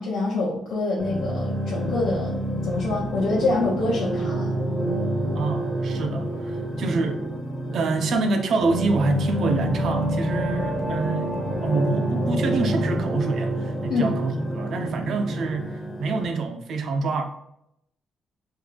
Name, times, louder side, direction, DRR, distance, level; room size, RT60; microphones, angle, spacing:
voice 1, 0.0-2.3 2.6-4.5 13.9-14.1, left 3 dB, 70° left, -7 dB, 0.9 m, -25 dB
sound 1, 1.0-16.2, right 1 dB, 10° left, 0.9 m, -28 dB
voice 2, 5.3-7.2 7.7-11.3 11.6-17.2, right 3 dB, 60° right, 4 dB, 0.5 m, -26 dB
3.5 x 2.3 x 3.2 m, 0.77 s
cardioid pair, 130°, 0 cm